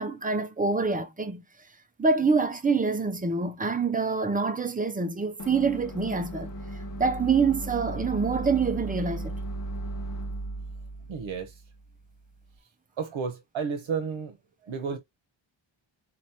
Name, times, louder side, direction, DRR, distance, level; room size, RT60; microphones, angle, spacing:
voice 1, 0.0-1.4 2.0-6.5 7.0-9.4, right 4 dB, 15° right, 0.6 m, -26 dB
sound 1, 5.4-12.5, right 1 dB, 40° left, 1.0 m, -36 dB
voice 2, 11.1-11.6 13.0-14.4 14.6-15.0, right 6 dB, 70° right, 1.0 m, -32 dB
4.2 x 3.0 x 4.2 m
wide cardioid pair, 145°, 49 cm